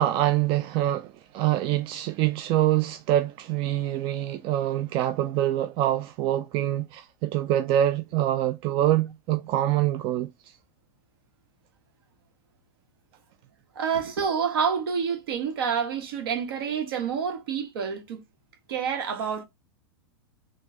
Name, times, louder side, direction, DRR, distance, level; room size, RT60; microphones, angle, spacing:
voice 1, 0.0-10.3, right 13 dB, 40° right, 0.4 m, -25 dB
voice 2, 13.7-18.2 18.7-19.4, right 6 dB, 70° right, 1.5 m, -28 dB
4.4 x 2.4 x 3.8 m
hypercardioid pair, 105°, 13 cm